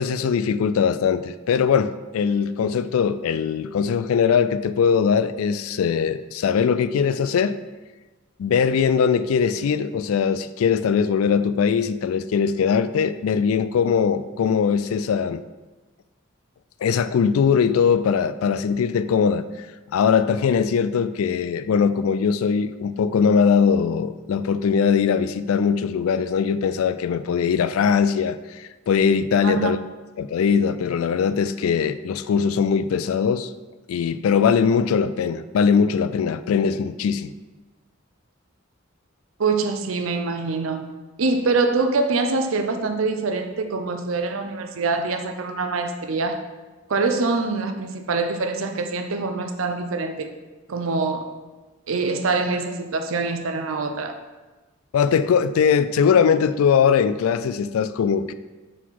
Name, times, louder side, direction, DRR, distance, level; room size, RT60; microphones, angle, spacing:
voice 1, 0.0-7.6 8.4-15.4 16.8-19.7 19.9-29.8 30.2-33.5 33.9-37.3 54.9-58.3, left 6 dB, 85° left, 0.3 m, -21 dB
voice 2, 29.4-29.7 39.4-40.9 41.2-46.4 46.9-50.3 50.7-51.2 51.9-54.2, right 3 dB, 70° right, 0.6 m, -24 dB
5.9 x 4.0 x 4.6 m
head